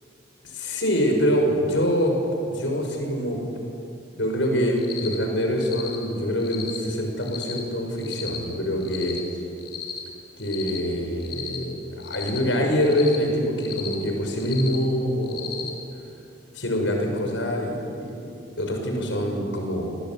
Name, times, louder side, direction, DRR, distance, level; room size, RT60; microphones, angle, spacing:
voice 1, 0.5-2.1 2.4-3.4 4.2-9.2 10.4-15.7 16.5-20.0, equal, 80° left, 2 dB, 6.2 m, -25 dB
Cricket, 4.8-5.2 5.6-6.0 6.4-6.8 7.2-7.6 8.0-8.4 8.8-9.2 9.6-10.0 10.4-10.8 11.2-11.6 12.0-12.4 12.8-13.2 13.6-13.9 14.4-14.8 15.2-15.7, left 8 dB, 55° left, 5.6 m, -35 dB
27.5 x 20.5 x 9.1 m, 2.7 s
head